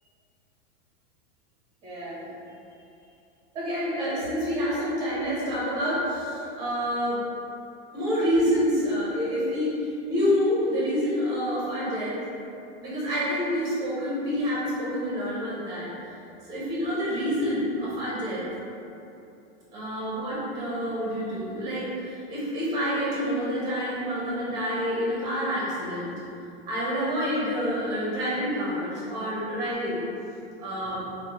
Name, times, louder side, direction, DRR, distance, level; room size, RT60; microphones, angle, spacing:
voice 1, 1.8-2.3 2.7-2.8 3.5-7.2 7.9-12.2 12.8-15.9 16.5-18.5 19.7-26.1 26.7-30.0 30.6-31.0, equal, 15° right, -8 dB, 0.7 m, -28 dB
4.2 x 2.1 x 2.9 m, 2.8 s
supercardioid pair, 175°, 31 cm